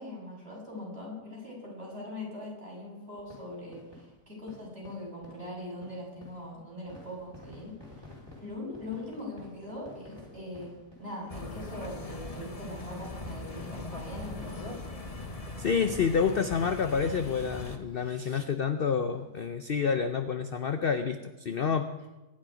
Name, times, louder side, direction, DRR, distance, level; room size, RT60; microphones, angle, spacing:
voice 1, 0.0-7.8 8.4-10.7 11.0-14.8, left 1 dB, 35° right, -4 dB, 7.4 m, -41 dB
sound 1, 3.2-17.1 17.3-17.5 17.9-18.0 18.4-18.6 18.9-19.9 20.3-20.4 20.5-20.6, left 2 dB, 15° right, 3.6 m, -54 dB
sound 2, 11.3-17.8, left 2 dB, 25° left, 1.2 m, -40 dB
voice 2, 15.6-21.9, left 6 dB, 50° left, 8 dB, 0.7 m, -28 dB
23.5 x 9.9 x 5.1 m, 1.1 s
omnidirectional pair, 1.7 m